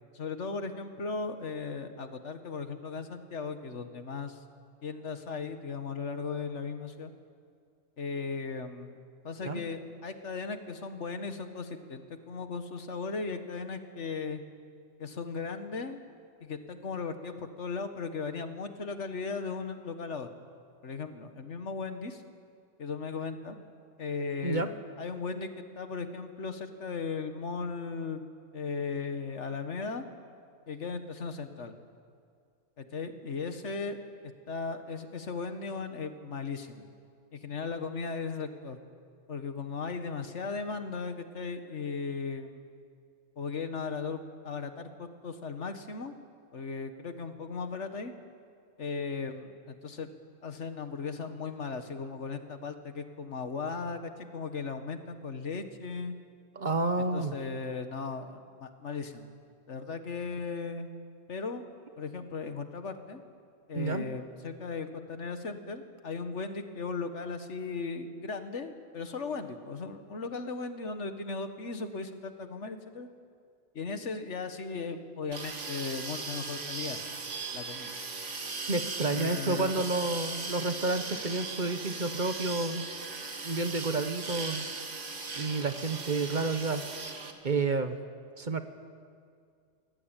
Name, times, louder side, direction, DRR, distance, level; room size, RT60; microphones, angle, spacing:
voice 1, 0.1-4.4 4.8-7.1 8.0-9.0 9.2-14.4 15.0-16.0 16.4-20.3 20.8-22.2 22.8-23.6 24.0-25.5 25.8-28.2 28.5-30.0 30.7-31.8 32.8-34.0 34.2-36.9 37.3-38.8 39.3-42.7 43.4-44.2 44.4-46.1 46.5-48.1 48.8-50.1 50.4-56.2 57.1-59.3 59.7-60.9 61.3-61.6 62.0-63.2 63.7-73.1 73.8-77.0 77.5-77.9 79.1-79.8, left 4 dB, 70° left, 8 dB, 1.7 m, -37 dB
voice 2, 56.5-57.3 63.7-64.0 78.7-82.9 83.4-84.6 85.4-86.8 87.4-88.0 88.4-88.6, right 3 dB, 40° right, 9 dB, 1.2 m, -30 dB
sound 1, 75.3-87.3, right 4 dB, 75° right, 2.1 m, -38 dB
24.0 x 17.5 x 9.0 m, 2.3 s
omnidirectional pair, 1.2 m